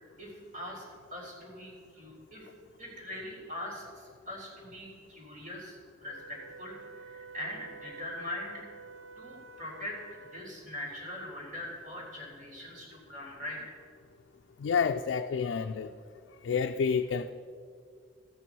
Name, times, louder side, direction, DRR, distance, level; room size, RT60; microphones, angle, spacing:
voice 1, 0.2-2.5 2.8-8.7 9.2-10.0 10.2-13.8, left 1 dB, 45° right, -4 dB, 3.6 m, -42 dB
Wind instrument woodwind instrument, 6.1-10.7, right 4 dB, 70° right, 0.5 m, -50 dB
voice 2, 14.6-15.9 16.4-17.3, left 6 dB, 75° left, 6 dB, 0.4 m, -29 dB
13.5 x 9.1 x 4.6 m, 2.1 s
head